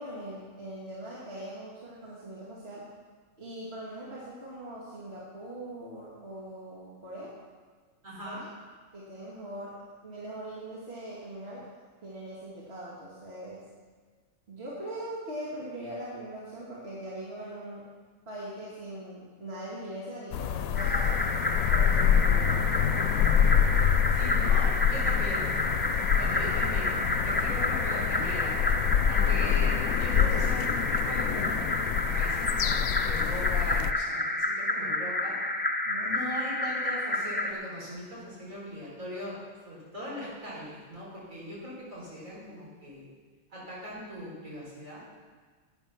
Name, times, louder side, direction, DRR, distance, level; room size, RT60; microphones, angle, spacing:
voice 1, 0.0-2.8 3.4-7.3 8.2-8.4 8.9-11.7 12.0-13.6 14.5-18.0 18.3-22.6 24.1-24.5 35.8-36.2, right 1 dB, 50° right, -7 dB, 2.5 m, -41 dB
voice 2, 8.0-8.4 24.1-25.6 26.1-28.6 29.1-31.6 32.1-35.4 36.0-39.3 39.6-43.1 43.5-45.0, equal, 75° right, -6 dB, 5.1 m, -40 dB
sound 1, 20.3-33.9, left 8 dB, 85° left, 1.0 m, -26 dB
sound 2, 20.8-37.5, left 1 dB, 10° left, 0.6 m, -30 dB
12.0 x 9.3 x 5.9 m, 1.5 s
omnidirectional pair, 1.4 m